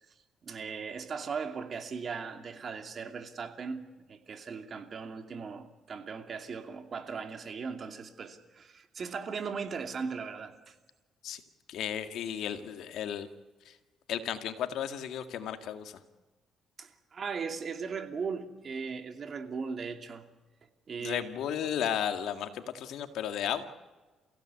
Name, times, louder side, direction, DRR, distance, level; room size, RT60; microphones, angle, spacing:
voice 1, 0.4-10.7 16.8-20.3 20.9-21.5, right 5 dB, 50° right, 2.7 m, -38 dB
voice 2, 11.7-13.3 13.7-13.8 14.1-16.0 21.0-23.7, left 9 dB, 80° left, 1.9 m, -34 dB
30.0 x 16.0 x 8.4 m
cardioid pair, 90°, 0 cm